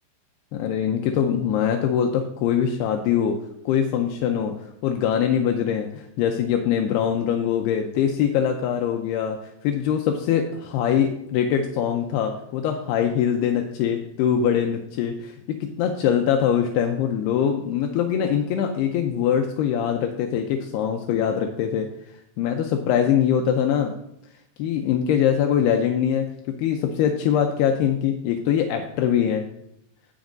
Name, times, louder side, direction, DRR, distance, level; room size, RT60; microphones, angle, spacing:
voice 1, 0.5-3.4 3.7-9.4 9.6-15.4 15.8-21.9 22.4-24.0 24.6-26.3 26.6-29.4, left 8 dB, 80° left, 4 dB, 2.6 m, -23 dB
17.5 x 6.1 x 2.6 m, 0.76 s
omnidirectional pair, 4.8 m